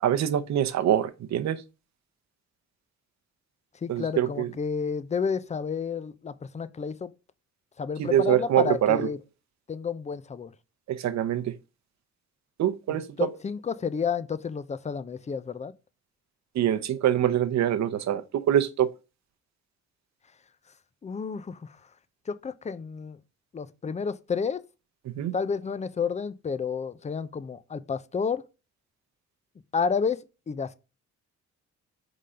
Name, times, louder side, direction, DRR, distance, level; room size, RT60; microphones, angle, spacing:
voice 1, 0.0-1.6 3.9-4.5 8.0-9.1 10.9-11.5 12.6-13.3 16.5-18.9 25.1-25.3, right 11 dB, 65° right, 0.8 m, -24 dB
voice 2, 3.8-7.1 7.8-9.2 9.7-10.5 12.9-15.7 21.0-21.8 22.3-23.2 23.5-24.6 25.3-28.4 29.7-30.7, left 5 dB, 25° left, 0.5 m, -31 dB
5.0 x 3.8 x 5.6 m
cardioid pair, 90°, 30 cm